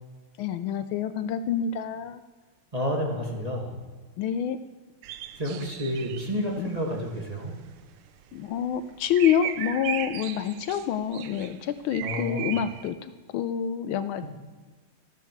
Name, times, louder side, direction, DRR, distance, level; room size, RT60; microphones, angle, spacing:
voice 1, 0.4-2.2 4.2-4.6 6.6-6.7 8.3-14.3, left 9 dB, 75° left, 11 dB, 1.4 m, -27 dB
voice 2, 2.7-3.8 5.4-7.5 12.0-12.5 14.2-14.3, equal, 20° right, -1 dB, 2.0 m, -30 dB
sound 1, 5.0-12.9, right 10 dB, 90° right, 1.6 m, -37 dB
13.0 x 13.0 x 4.7 m, 1.4 s
omnidirectional pair, 2.4 m